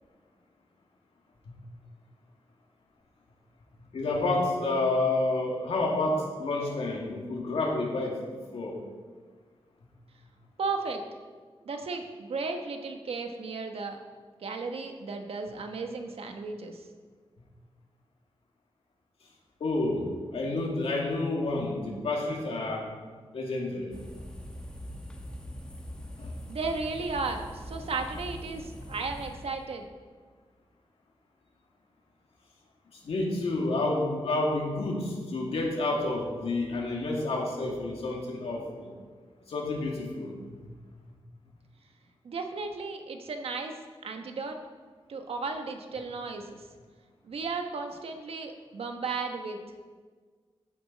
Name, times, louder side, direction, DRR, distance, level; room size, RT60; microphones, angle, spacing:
voice 1, 3.9-8.8 19.6-20.0 20.3-22.8 23.3-23.9 26.2-26.3 32.9-38.9 39.5-40.6, left 2 dB, 85° left, -1 dB, 2.4 m, -29 dB
voice 2, 10.6-11.0 11.6-14.0 14.4-16.8 26.5-29.9 42.2-43.8 44.0-44.6 45.1-46.6 47.2-49.6, right 4 dB, 80° right, 5 dB, 1.2 m, -34 dB
sound 1, 23.9-29.7, equal, 10° left, 1.1 m, -42 dB
13.5 x 9.1 x 4.1 m, 1.5 s
wide cardioid pair, 155°, 10 cm